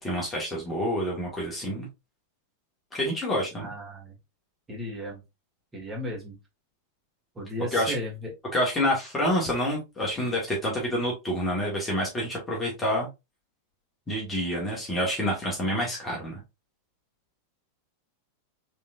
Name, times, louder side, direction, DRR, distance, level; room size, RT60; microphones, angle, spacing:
voice 1, 0.0-1.9 2.9-3.7 7.7-7.9 8.5-13.1 14.1-16.4, equal, 15° left, -2 dB, 1.6 m, -28 dB
voice 2, 3.6-4.1 4.7-5.2 5.7-6.4 7.4-8.3, equal, 15° right, -2 dB, 2.0 m, -35 dB
4.3 x 3.6 x 2.5 m, 0.24 s
figure-of-eight pair, 90°, 0 cm